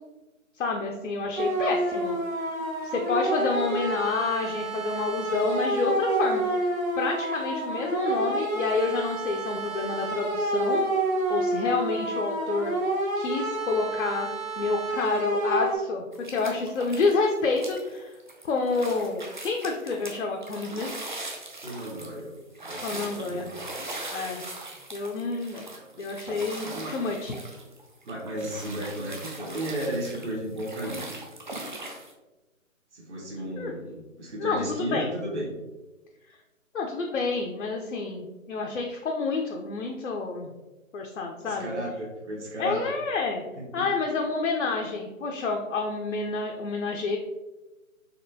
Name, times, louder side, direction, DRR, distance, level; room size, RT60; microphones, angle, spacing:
voice 1, 0.6-2.2 2.8-6.7 7.0-10.9 11.3-12.7 13.2-14.3 14.6-18.1 18.4-20.9 22.8-23.5 24.1-24.4 24.9-25.7 26.0-27.3 33.6-33.7 34.4-35.1 36.7-40.5 40.9-41.7 42.6-43.4 43.7-47.2, left 4 dB, 60° left, 1 dB, 0.6 m, -28 dB
sound 1, 1.4-15.8, right 1 dB, 80° right, 1.1 m, -29 dB
sound 2, 16.1-17.2 17.5-32.1, right 2 dB, 40° right, 0.4 m, -40 dB
voice 2, 21.6-23.7 25.7-26.9 28.0-31.2 32.9-35.6 41.4-42.9 43.6-43.9, right 1 dB, 55° right, -4 dB, 1.2 m, -35 dB
4.2 x 2.9 x 2.7 m, 1.1 s
figure-of-eight pair, 145°, 41 cm